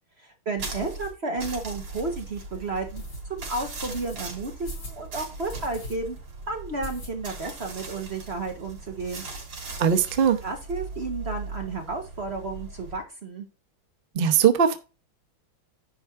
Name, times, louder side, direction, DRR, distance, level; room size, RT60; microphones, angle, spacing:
voice 1, 0.2-3.0 3.3-6.2 6.5-9.2 10.4-13.4, right 3 dB, 35° right, 1.2 m, -32 dB
sound 1, 0.6-13.0, right 3 dB, 90° right, 3.9 m, -39 dB
sound 2, 2.9-3.2 3.9-4.2 4.6-5.0 5.5-5.9 6.3-6.4 6.8-7.5 7.8-7.9 8.2-8.3 8.5-9.1, left 2 dB, 75° left, 4.4 m, -39 dB
voice 2, 9.8-10.4 14.1-14.8, right 7 dB, 70° right, 0.5 m, -20 dB
10.0 x 3.5 x 5.6 m
omnidirectional pair, 2.3 m